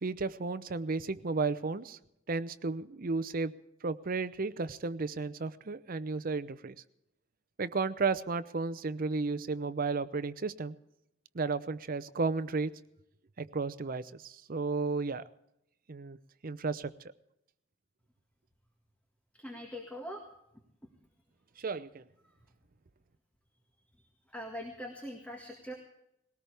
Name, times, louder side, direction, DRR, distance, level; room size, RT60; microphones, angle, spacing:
voice 1, 0.0-2.0 2.3-3.5 3.8-6.8 7.6-10.8 11.3-12.7 13.4-15.2 15.9-16.2 16.4-16.9 21.6-22.0, right 4 dB, 45° right, 14 dB, 0.7 m, -33 dB
voice 2, 19.4-20.3 24.3-25.7, equal, 5° left, 1 dB, 1.9 m, -42 dB
20.5 x 18.0 x 3.4 m, 0.82 s
head